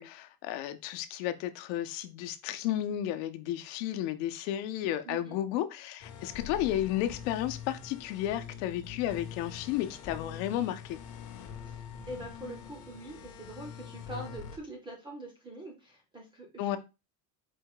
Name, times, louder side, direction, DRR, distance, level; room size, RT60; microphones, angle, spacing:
voice 1, 0.0-11.0 16.6-16.8, left 12 dB, 80° left, 0.7 m, -33 dB
voice 2, 5.0-5.4 11.7-16.8, right 1 dB, 10° right, 0.4 m, -44 dB
sound 1, 6.0-14.6, left 8 dB, 40° left, 0.6 m, -44 dB
4.5 x 2.2 x 4.7 m
cardioid pair, 175°, 50 cm